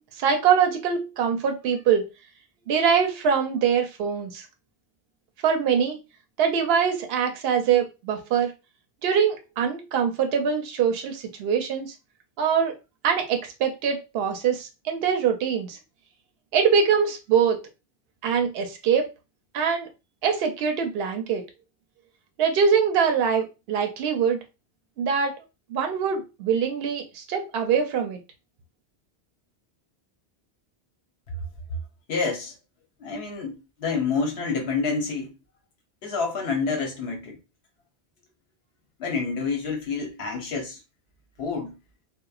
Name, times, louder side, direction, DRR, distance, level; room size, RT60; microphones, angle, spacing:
voice 1, 0.2-2.1 2.7-4.5 5.4-6.0 6.4-8.5 9.0-11.9 12.4-12.7 13.0-15.8 16.5-17.6 18.2-19.1 19.5-19.9 20.2-21.4 22.4-24.4 25.0-25.3 25.7-28.2, right 7 dB, 70° right, 0.8 m, -23 dB
voice 2, 32.1-32.5 33.0-35.3 36.0-37.4 39.0-40.8 41.4-41.7, left 4 dB, 75° left, 1.0 m, -28 dB
2.9 x 2.1 x 2.3 m
omnidirectional pair, 1.1 m